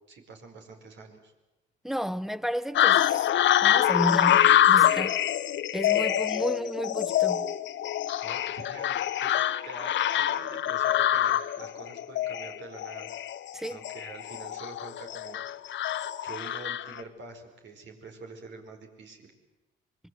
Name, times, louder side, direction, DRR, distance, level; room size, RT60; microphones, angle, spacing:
voice 1, 0.1-1.3 8.2-13.1 13.7-15.5 16.2-19.3, right 3 dB, 65° right, 4.8 m, -46 dB
voice 2, 1.8-3.3 3.6-5.2 5.7-7.5 13.5-13.8, equal, ahead, 0.8 m, -32 dB
sound 1, 2.7-17.0, left 11 dB, 70° left, 0.9 m, -25 dB
25.5 x 21.5 x 7.9 m
cardioid pair, 90°, 20 cm